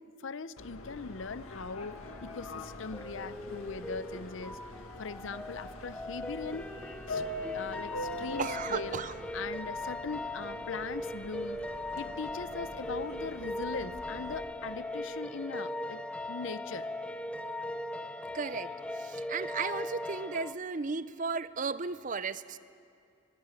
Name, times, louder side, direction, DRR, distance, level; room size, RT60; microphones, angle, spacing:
voice 1, 0.0-4.6 5.0-6.7 7.1-7.2 7.5-9.0 9.3-11.7 12.0-16.0 16.3-16.9, left 4 dB, 60° left, 16 dB, 0.6 m, -40 dB
Subway metro underground, 0.6-14.4, left 1 dB, 90° left, 1.9 m, -44 dB
sound 1, 1.2-20.5, left 1 dB, 5° left, 0.6 m, -40 dB
voice 2, 8.4-9.1 18.3-22.6, right 5 dB, 40° right, 15 dB, 0.5 m, -35 dB
21.0 x 18.5 x 9.0 m, 2.5 s
head